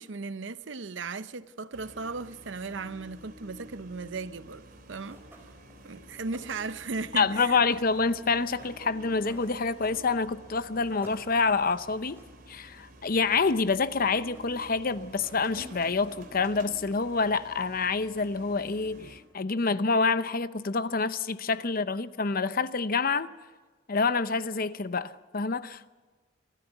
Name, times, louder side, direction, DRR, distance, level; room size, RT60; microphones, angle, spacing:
voice 1, 0.0-4.6 4.9-5.2 5.8-7.6, right 4 dB, 65° right, 0.8 m, -36 dB
sound 1, 1.7-19.2, right 1 dB, 50° right, 3.2 m, -50 dB
sound 2, 5.0-10.5 10.8-12.6 13.0-13.9 14.2-14.8 15.0-17.3, right 1 dB, 10° right, 4.8 m, -54 dB
voice 2, 7.2-12.2 12.5-23.3 23.9-25.9, left 4 dB, 50° left, 0.7 m, -27 dB
26.0 x 13.5 x 8.2 m
head